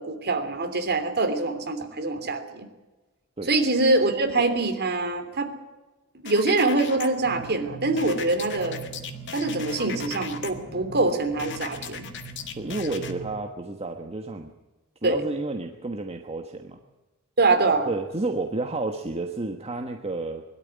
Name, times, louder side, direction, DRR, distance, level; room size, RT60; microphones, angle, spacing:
voice 1, 0.0-2.7 3.5-5.5 6.2-8.8 9.3-12.1 15.0-15.2 17.4-17.9, right 2 dB, 50° right, 6 dB, 3.1 m, -24 dB
sound 1, 6.3-7.1 8.0-10.5 11.4-13.1, left 7 dB, 55° left, 1.9 m, -37 dB
sound 2, 7.2-13.4, right 4 dB, 15° left, 4.0 m, -41 dB
voice 2, 12.6-14.5 15.0-16.8 17.9-20.4, right 2 dB, 30° right, 4 dB, 1.3 m, -31 dB
21.5 x 13.0 x 9.6 m, 1.2 s
head